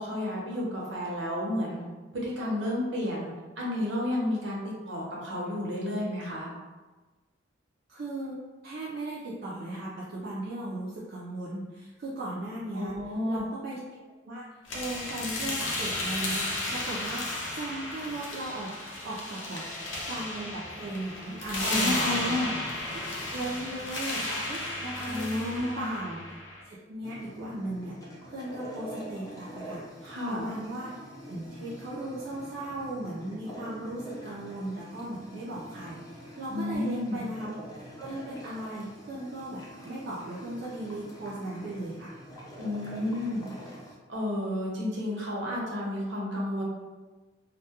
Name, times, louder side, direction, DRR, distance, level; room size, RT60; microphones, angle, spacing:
voice 1, 0.0-1.8 2.1-3.3 3.6-6.5 12.7-13.4 21.6-22.5 25.0-25.9 30.0-30.4 36.5-37.2 42.6-43.4 44.1-46.6, left 1 dB, 65° right, -3 dB, 0.7 m, -31 dB
voice 2, 7.9-12.9 13.3-13.8 14.2-14.4 14.7-17.2 17.5-18.7 19.0-19.6 20.1-22.5 22.9-23.0 23.3-26.2 26.7-27.9 28.2-30.9 31.3-36.0 36.4-37.6 38.0-42.1, right 1 dB, 50° right, -7 dB, 0.4 m, -37 dB
sound 1, 14.7-26.6, left 2 dB, 75° left, 0.6 m, -34 dB
sound 2, 27.0-44.0, equal, 20° left, 0.3 m, -45 dB
2.2 x 2.1 x 2.8 m, 1.2 s
head